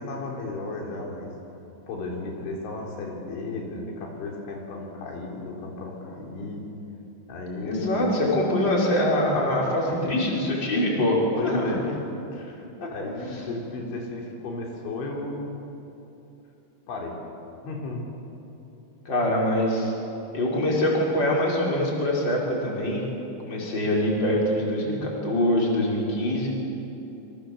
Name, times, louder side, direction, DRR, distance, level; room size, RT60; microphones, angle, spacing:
voice 1, 0.0-1.3 1.9-6.6 7.3-8.1 9.9-10.1 11.4-12.0 12.3-12.7 12.9-15.5 16.9-17.2 17.6-18.1, left 2 dB, 90° left, -1 dB, 5.9 m, -34 dB
voice 2, 7.6-11.2 11.4-11.6 19.1-19.9 20.3-23.0 23.4-26.5, left 1 dB, 25° left, -3 dB, 5.7 m, -24 dB
27.5 x 25.5 x 7.9 m, 2.9 s
omnidirectional pair, 5.2 m